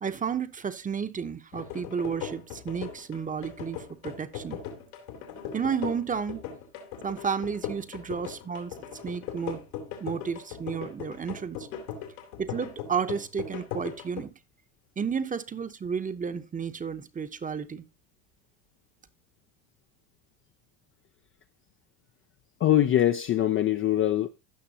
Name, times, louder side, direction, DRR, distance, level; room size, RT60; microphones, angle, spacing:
voice 1, 0.0-4.6 5.5-6.4 7.0-9.6 10.0-11.7 12.4-14.3 15.0-17.8, right 6 dB, 15° right, 0.8 m, -32 dB
sound 1, 1.5-14.2, left 8 dB, 85° left, 3.1 m, -39 dB
voice 2, 22.6-24.3, left 12 dB, 30° left, 0.4 m, -23 dB
16.0 x 6.1 x 2.8 m
supercardioid pair, 110°, 46 cm